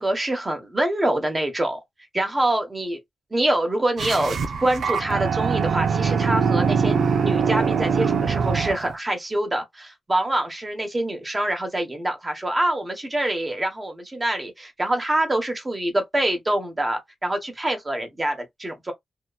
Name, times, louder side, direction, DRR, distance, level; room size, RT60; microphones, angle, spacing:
voice 1, 0.0-1.8 2.1-3.0 3.3-7.0 7.2-18.9, right 1 dB, 25° right, 1.1 m, -25 dB
sound 1, 4.0-8.9, right 6 dB, 75° right, 0.4 m, -23 dB
2.7 x 2.2 x 2.3 m
cardioid pair, 60°, 0 cm